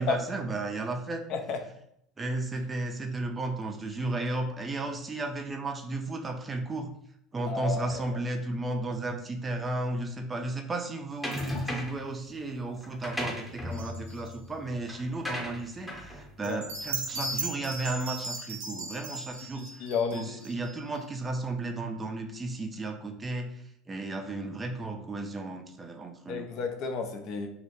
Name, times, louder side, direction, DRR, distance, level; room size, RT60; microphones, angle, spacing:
voice 1, 0.0-1.2 2.2-6.9 7.3-23.5 23.9-26.5, right 2 dB, 25° right, 3 dB, 0.4 m, -34 dB
voice 2, 1.3-1.6 7.5-8.0 16.4-16.6 19.5-20.2 26.3-27.5, left 5 dB, 55° left, 4 dB, 0.3 m, -32 dB
sound 1, 11.2-12.1 12.8-17.5, left 1 dB, 10° left, 0.7 m, -37 dB
sound 2, 13.7-14.4 16.4-21.0, right 3 dB, 80° right, 0.5 m, -37 dB
2.1 x 2.1 x 2.8 m, 0.73 s
hypercardioid pair, 75°, 0 cm